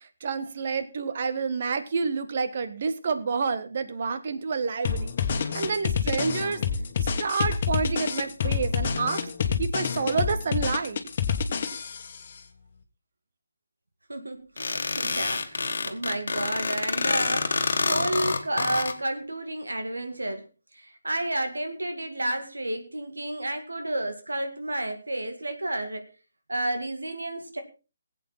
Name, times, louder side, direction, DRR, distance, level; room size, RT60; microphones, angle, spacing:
voice 1, 0.2-5.1 5.4-6.6 7.0-9.2 9.6-11.0, right 5 dB, 45° right, 11 dB, 1.4 m, -29 dB
sound 1, 4.8-12.2, left 6 dB, 40° left, 1.7 m, -27 dB
voice 2, 14.1-20.5 20.7-26.1 26.5-27.6, right 1 dB, 75° right, 7 dB, 2.1 m, -31 dB
sound 2, 14.6-18.9, left 4 dB, 60° left, 1.7 m, -27 dB
19.5 x 8.4 x 4.2 m, 0.32 s
figure-of-eight pair, 145°, 0 cm